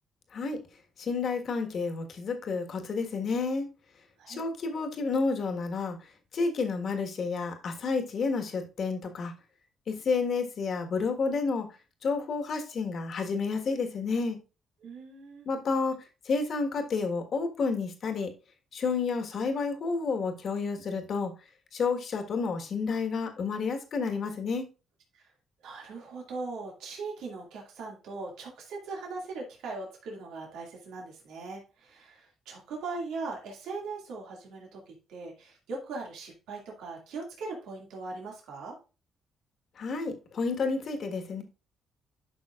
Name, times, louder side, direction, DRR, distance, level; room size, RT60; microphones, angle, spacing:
voice 1, 1.0-3.7 4.3-6.0 6.3-9.3 9.9-11.7 12.0-14.4 15.4-16.0 16.2-18.3 18.7-21.3 21.7-24.7 39.8-41.4, left 4 dB, 55° left, 1.5 m, -30 dB
voice 2, 14.8-15.5 25.1-25.3 25.6-38.8, right 3 dB, 90° right, 2.2 m, -40 dB
11.0 x 5.6 x 2.4 m
cardioid pair, 90°, 0 cm